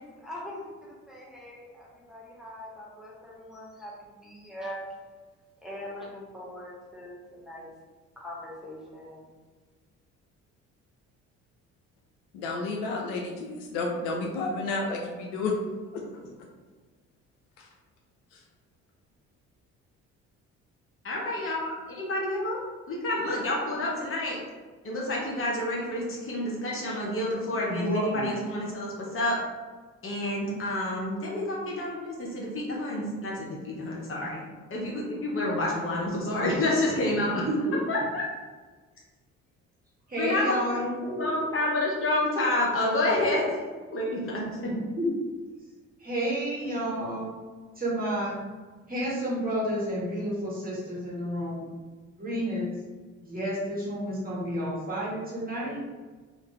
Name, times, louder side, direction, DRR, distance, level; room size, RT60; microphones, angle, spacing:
voice 1, 0.2-4.9 5.6-7.7 8.2-9.3, left 1 dB, ahead, -5 dB, 0.9 m, -42 dB
voice 2, 12.3-15.6 15.9-16.2 17.6-17.7 18.3-18.4, left 3 dB, 65° left, 0 dB, 0.6 m, -31 dB
voice 3, 21.0-22.6 22.9-24.4 24.8-29.4 30.0-37.5 37.9-38.2 40.2-40.8 41.2-43.6 43.9-44.7, left 1 dB, 30° left, -4 dB, 0.9 m, -29 dB
voice 4, 27.7-28.3 37.5-37.8 40.1-41.3 44.7-45.1 46.0-47.3 47.8-48.4 48.9-51.7 52.2-52.7 53.2-55.8, equal, 20° right, -6 dB, 1.4 m, -30 dB
3.2 x 2.5 x 3.1 m, 1.4 s
figure-of-eight pair, 45°, 40 cm